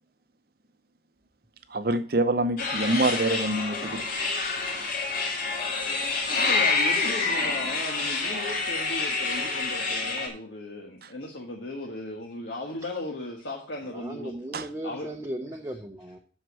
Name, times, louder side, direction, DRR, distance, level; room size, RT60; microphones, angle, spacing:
voice 1, 1.7-4.0 14.5-14.7, right 2 dB, 55° right, 0.8 m, -25 dB
sound 1, 2.6-10.3, left 3 dB, 45° left, 2.4 m, -27 dB
voice 2, 6.4-14.3 14.8-15.1, left 1 dB, 75° left, 1.4 m, -36 dB
voice 3, 13.9-16.2, right 1 dB, 15° right, 0.7 m, -37 dB
7.9 x 6.6 x 6.2 m
head